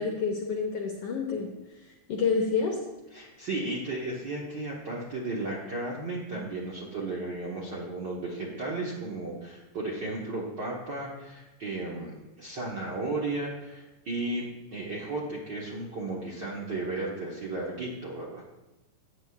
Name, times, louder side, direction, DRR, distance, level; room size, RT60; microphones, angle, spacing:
voice 1, 0.0-1.5 2.1-2.8, left 5 dB, 65° left, 0 dB, 1.6 m, -28 dB
voice 2, 3.1-18.4, right 2 dB, 55° right, -4 dB, 1.2 m, -34 dB
14.0 x 9.0 x 2.4 m, 1.1 s
omnidirectional pair, 3.7 m